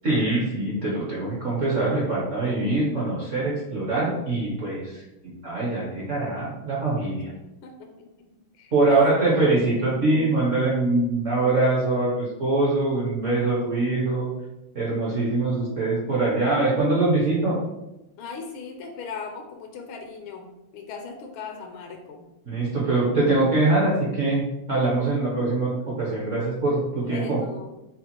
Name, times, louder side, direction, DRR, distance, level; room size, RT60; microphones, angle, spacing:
voice 1, 0.0-7.3 8.7-14.3 14.7-17.6 22.4-27.4, right 2 dB, 50° right, -6 dB, 1.0 m, -23 dB
voice 2, 7.6-8.1 8.6-9.1 18.2-22.3 26.9-27.8, left 5 dB, 75° left, 4 dB, 1.3 m, -38 dB
4.3 x 2.3 x 4.3 m, 0.92 s
omnidirectional pair, 2.4 m